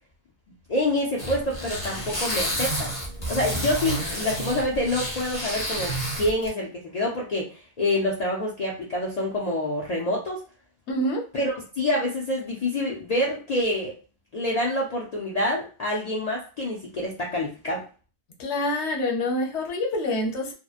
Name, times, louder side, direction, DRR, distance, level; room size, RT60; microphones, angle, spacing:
voice 1, 0.7-2.9 3.3-10.4 11.3-13.9 14.3-17.8, left 1 dB, 50° left, -3 dB, 0.5 m, -27 dB
sound 1, 1.2-6.5, right 1 dB, 15° left, 0.9 m, -30 dB
voice 2, 10.9-11.2 18.4-20.5, left 1 dB, 80° left, 1 dB, 1.0 m, -26 dB
2.8 x 2.0 x 2.3 m, 0.37 s
omnidirectional pair, 1.1 m